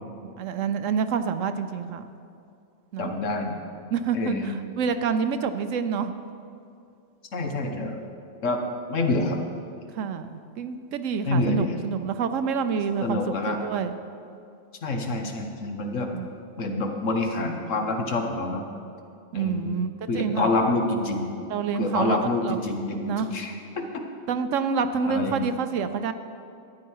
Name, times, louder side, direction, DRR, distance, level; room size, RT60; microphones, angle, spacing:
voice 1, 0.4-2.1 2.9-3.1 3.9-6.1 10.0-13.9 16.1-16.3 19.3-19.9 20.1-20.5 21.5-22.6 23.1-23.3 24.3-26.1, right 6 dB, 75° right, 10 dB, 1.0 m, -27 dB
voice 2, 3.0-3.6 4.1-4.5 7.3-8.0 8.4-8.6 8.9-9.4 11.3-11.8 13.0-13.6 14.8-16.1 16.6-18.6 19.3-19.8 20.1-21.3 21.7-24.0 25.1-25.4, left 2 dB, 75° left, 3 dB, 1.5 m, -27 dB
13.5 x 9.6 x 4.7 m, 2.5 s
omnidirectional pair, 1.3 m